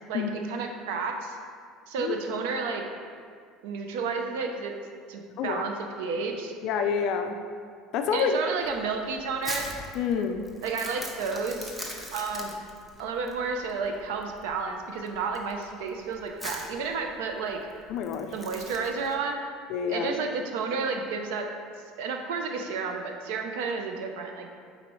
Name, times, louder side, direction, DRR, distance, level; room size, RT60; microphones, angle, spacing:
voice 1, 0.1-1.4 1.9-2.8 3.6-4.7 5.1-6.5 8.1-9.7 10.6-11.7 12.1-12.6 13.0-17.6 18.3-19.4 19.9-21.5 22.0-24.5, right 4 dB, 90° right, 4 dB, 0.7 m, -31 dB
voice 2, 5.4-5.7 6.6-7.4 7.9-8.4 9.9-10.5 17.9-18.3 19.7-20.1, left 7 dB, 55° left, 6 dB, 0.5 m, -28 dB
Crumpling crinkling, 8.6-19.1, left 1 dB, ahead, 0.7 m, -41 dB
9.3 x 4.2 x 3.1 m, 2.2 s
cardioid pair, 145°, 0 cm